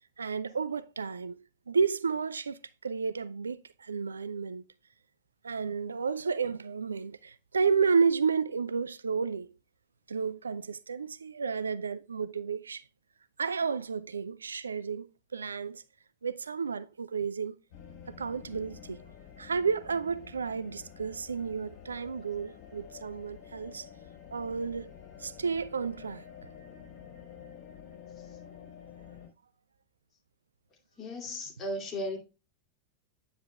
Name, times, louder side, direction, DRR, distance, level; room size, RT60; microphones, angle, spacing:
voice 1, 0.2-4.6 5.4-9.5 10.1-12.8 13.4-15.8 16.2-17.6 18.1-19.0 19.4-23.9 24.3-24.9 25.2-26.2, right 5 dB, 75° right, 0.3 m, -31 dB
sound 1, 17.7-29.3, left 8 dB, 45° left, 3.5 m, -49 dB
voice 2, 31.0-32.2, left 1 dB, 25° left, 2.5 m, -36 dB
9.3 x 7.9 x 2.2 m
figure-of-eight pair, 90°, 0 cm